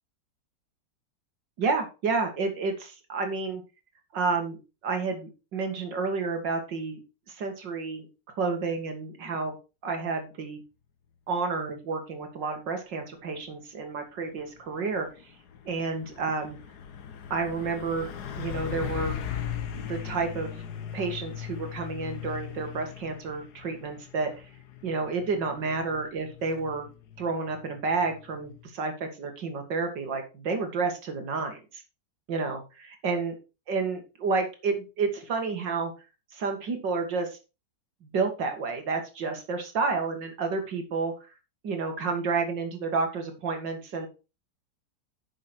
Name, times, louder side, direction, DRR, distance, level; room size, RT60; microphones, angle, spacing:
voice 1, 1.6-3.6 4.1-4.6 4.8-7.0 7.3-8.1 8.4-9.6 9.8-10.6 11.3-15.1 15.7-16.6 17.3-18.1 18.4-19.2 19.9-20.5 20.9-24.3 24.8-26.9 27.2-31.8 32.3-33.3 33.7-35.9 36.3-37.4 38.0-41.1 41.6-44.1, right 4 dB, 80° right, 5 dB, 2.7 m, -30 dB
Truck, 14.4-28.7, left 9 dB, 65° left, 1.6 m, -39 dB
10.0 x 6.3 x 4.5 m, 0.30 s
omnidirectional pair, 1.9 m